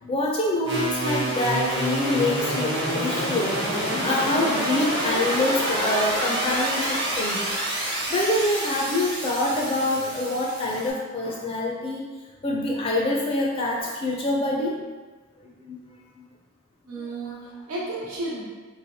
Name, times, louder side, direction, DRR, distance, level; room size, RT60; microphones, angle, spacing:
voice 1, 0.0-3.5 3.8-7.6 8.1-12.1 12.4-14.9 15.6-15.8 16.2-16.3 17.2-17.4, left 2 dB, 25° left, -2 dB, 0.4 m, -26 dB
sound 1, 0.6-10.9, right 1 dB, 55° right, 0.9 m, -27 dB
voice 2, 16.9-18.5, right 2 dB, 90° right, -5 dB, 1.0 m, -33 dB
3.1 x 2.7 x 2.7 m, 1.3 s
head